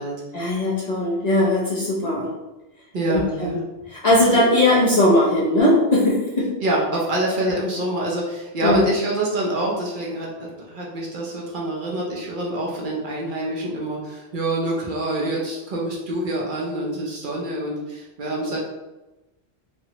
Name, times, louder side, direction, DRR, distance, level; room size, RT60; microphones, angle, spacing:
voice 1, 0.3-2.3 3.1-3.6 3.9-6.5 8.6-8.8, left 1 dB, 50° left, -5 dB, 0.6 m, -19 dB
voice 2, 2.9-3.6 6.6-18.6, right 1 dB, 55° right, -3 dB, 0.7 m, -26 dB
3.2 x 2.0 x 2.7 m, 1.0 s
omnidirectional pair, 1.1 m